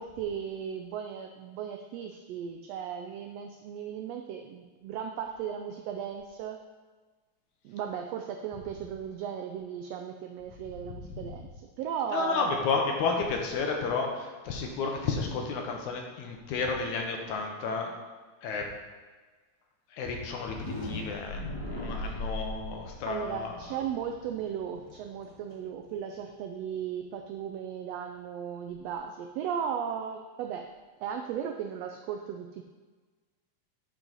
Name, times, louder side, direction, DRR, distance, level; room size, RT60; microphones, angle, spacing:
voice 1, 0.0-6.6 7.6-11.5 11.8-12.7 21.9-22.2 23.0-30.7 31.0-32.6, right 8 dB, 90° right, 4 dB, 1.4 m, -36 dB
voice 2, 12.1-17.9 18.4-18.7 19.9-20.6 20.8-23.5, left 4 dB, 80° left, 2 dB, 2.3 m, -31 dB
sound 1, 20.3-26.2, left 1 dB, 20° left, 0.9 m, -39 dB
9.1 x 4.8 x 3.9 m, 1.4 s
omnidirectional pair, 3.4 m